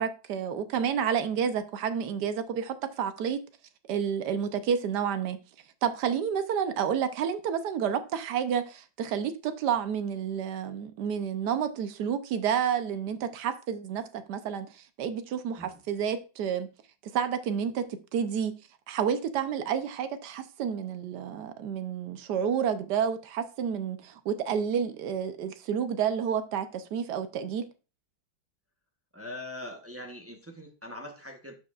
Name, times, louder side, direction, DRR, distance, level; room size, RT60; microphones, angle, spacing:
voice 1, 0.0-3.4 3.9-5.4 5.8-16.7 17.1-17.9 18.1-18.5 18.9-27.6, right 8 dB, 65° right, 1.2 m, -30 dB
voice 2, 29.1-31.5, left 1 dB, 15° right, 0.5 m, -42 dB
12.0 x 4.7 x 2.4 m
omnidirectional pair, 2.0 m